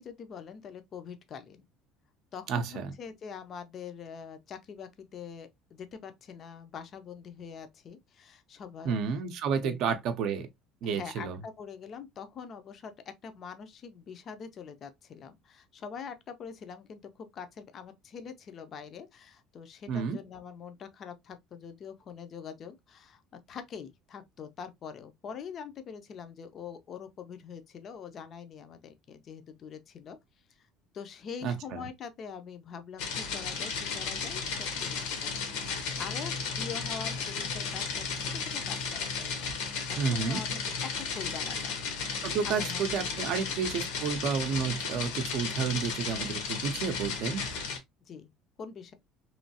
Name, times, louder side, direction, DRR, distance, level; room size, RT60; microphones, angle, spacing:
voice 1, 0.0-1.6 2.3-9.0 9.6-10.0 10.8-23.2 23.5-30.2 30.9-35.4 36.0-39.3 39.9-41.7 42.4-43.4 44.6-44.7 48.1-48.3 48.6-48.9, left 6 dB, 30° left, 0.4 m, -44 dB
voice 2, 2.5-2.9 8.8-10.5 10.8-11.4 19.9-20.2 31.4-31.9 40.0-40.4 42.2-47.4, right 6 dB, 50° right, 0.5 m, -31 dB
sound 1, 33.0-47.8, left 5 dB, 85° left, 1.0 m, -34 dB
3.1 x 2.7 x 2.6 m
cardioid pair, 170°, 0 cm